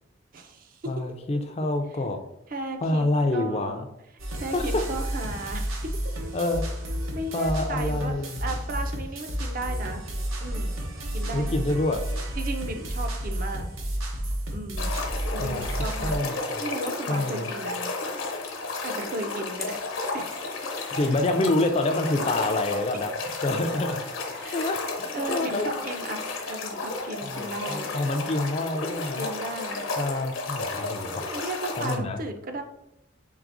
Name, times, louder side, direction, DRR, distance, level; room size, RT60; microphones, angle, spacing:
voice 1, 0.3-0.9 2.5-3.0 3.3-3.8 4.3-5.9 7.1-8.1 8.4-10.0 10.4-10.8 11.1-11.9 12.4-13.7 14.5-14.9 15.3-16.2 16.6-17.9 18.8-19.8 20.1-20.7 21.0-21.1 22.4-22.6 24.3-24.7 25.1-27.9 29.1-29.9 31.3-32.6, right 2 dB, 45° right, 6 dB, 0.4 m, -35 dB
voice 2, 0.9-2.2 2.8-3.9 4.5-4.8 5.3-5.4 6.3-6.6 7.3-8.4 11.3-12.0 15.4-15.7 16.0-16.6 17.1-17.5 20.9-23.1 23.4-24.0 24.3-25.7 27.2-29.3 30.0-31.3 31.8-32.2, left 2 dB, 30° left, 5 dB, 0.3 m, -27 dB
sound 1, 4.2-16.2, equal, 85° right, 0.8 m, -31 dB
sound 2, 14.8-31.9, left 3 dB, 85° left, 1.0 m, -33 dB
4.7 x 3.3 x 2.5 m, 0.84 s
head